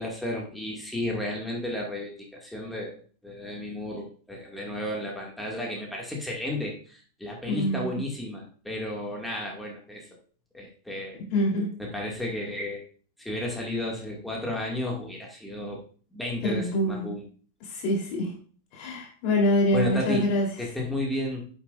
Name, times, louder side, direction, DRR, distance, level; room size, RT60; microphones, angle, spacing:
voice 1, 0.0-10.1 10.5-11.2 11.8-12.8 13.2-15.8 16.1-17.2 19.7-20.3 20.6-21.5, left 1 dB, 5° left, -1 dB, 2.3 m, -33 dB
voice 2, 7.5-8.0 11.3-11.7 16.4-17.1 17.7-18.3 18.7-20.5, left 1 dB, 45° left, -2 dB, 3.8 m, -25 dB
10.5 x 7.5 x 2.6 m, 0.42 s
figure-of-eight pair, 90°, 0 cm